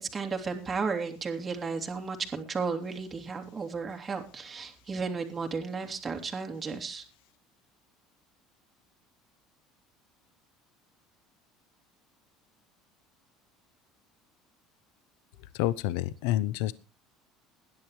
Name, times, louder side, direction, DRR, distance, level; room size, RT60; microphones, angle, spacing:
voice 1, 0.0-7.0, right 4 dB, 20° right, 3 dB, 2.8 m, -34 dB
voice 2, 15.5-16.7, left 14 dB, 85° left, 18 dB, 0.7 m, -28 dB
21.5 x 10.5 x 3.1 m, 0.30 s
cardioid pair, 130°, 0 cm